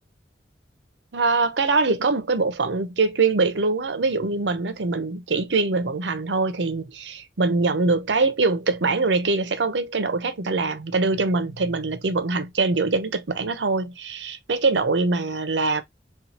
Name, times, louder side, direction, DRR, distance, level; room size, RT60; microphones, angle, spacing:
voice 1, 1.1-15.8, right 3 dB, 80° right, 0.7 m, -23 dB
4.2 x 2.4 x 2.8 m
head